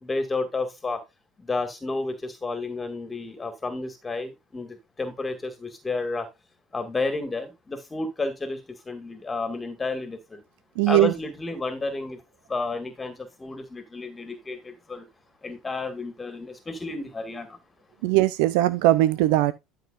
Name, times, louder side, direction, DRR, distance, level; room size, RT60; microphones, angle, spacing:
voice 1, 0.0-1.0 1.5-6.3 6.7-10.4 10.9-12.2 12.5-15.1 15.4-17.6, left 3 dB, 20° left, 2.1 m, -31 dB
voice 2, 10.8-11.1 18.0-19.5, right 15 dB, 70° right, 0.6 m, -20 dB
12.5 x 6.1 x 2.6 m
hypercardioid pair, 70°, 0 cm